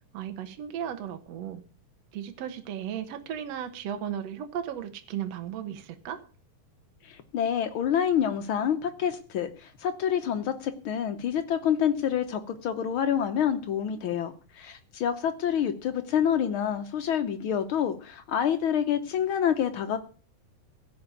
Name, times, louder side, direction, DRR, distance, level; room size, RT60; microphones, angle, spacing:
voice 1, 0.1-1.6 2.1-6.2, right 9 dB, 60° right, 7 dB, 2.1 m, -35 dB
voice 2, 7.0-20.0, left 9 dB, 85° left, 8 dB, 1.1 m, -27 dB
15.5 x 5.6 x 9.0 m, 0.40 s
omnidirectional pair, 3.6 m